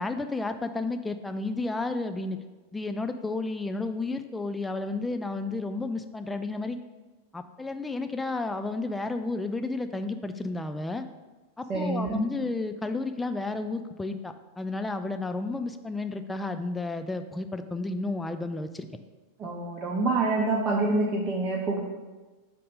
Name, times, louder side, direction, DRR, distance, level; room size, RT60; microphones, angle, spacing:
voice 1, 0.0-2.4 2.7-6.8 7.3-11.0 11.6-18.9, left 3 dB, 10° left, 7 dB, 0.3 m, -32 dB
voice 2, 11.7-12.3 19.4-21.8, right 2 dB, 30° right, -3 dB, 0.7 m, -26 dB
5.2 x 4.2 x 4.8 m, 1.2 s
figure-of-eight pair, 90°, 0 cm